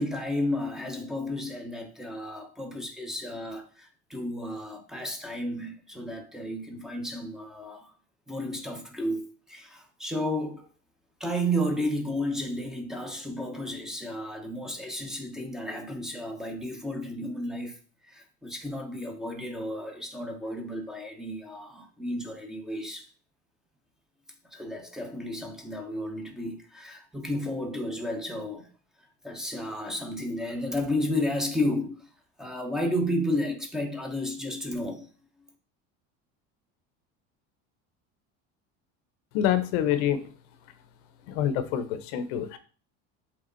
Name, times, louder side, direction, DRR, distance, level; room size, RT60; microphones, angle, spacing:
voice 1, 0.0-7.9 8.3-10.7 11.2-17.8 18.0-23.1 24.4-28.7 29.2-32.1 32.4-35.1, left 1 dB, ahead, 1.0 m, -32 dB
voice 2, 39.3-40.2 41.3-42.6, left 10 dB, 80° left, 0.9 m, -26 dB
7.7 x 3.6 x 4.0 m
cardioid pair, 160°, 31 cm